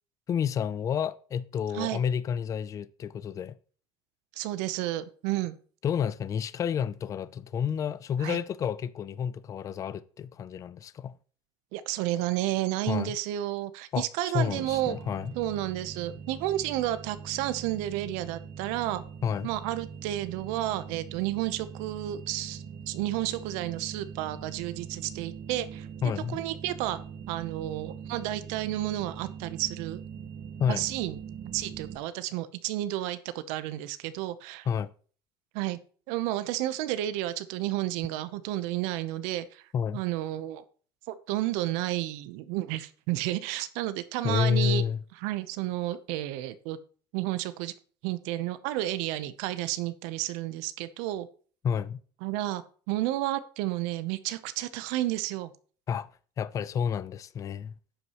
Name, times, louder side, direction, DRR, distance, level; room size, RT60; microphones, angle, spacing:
voice 1, 0.3-3.6 5.8-11.1 12.9-13.2 13.9-14.0 14.3-15.3 19.2-19.5 26.0-26.4 30.6-30.8 34.7-34.9 39.7-40.0 44.2-45.0 51.6-52.0 55.9-56.1 56.4-57.7, left 7 dB, 30° left, 0.4 m, -30 dB
voice 2, 4.4-5.6 8.2-8.4 11.7-15.0 15.4-19.0 19.4-25.9 26.3-27.0 27.3-30.0 30.7-31.2 31.5-34.7 35.5-35.8 36.1-40.6 41.1-44.8 45.2-46.8 47.1-47.7 48.0-51.3 52.2-55.5, right 14 dB, 75° right, 0.8 m, -31 dB
sound 1, 14.5-32.0, right 7 dB, 60° right, 1.8 m, -42 dB
11.0 x 8.1 x 3.0 m
cardioid pair, 135°, 12 cm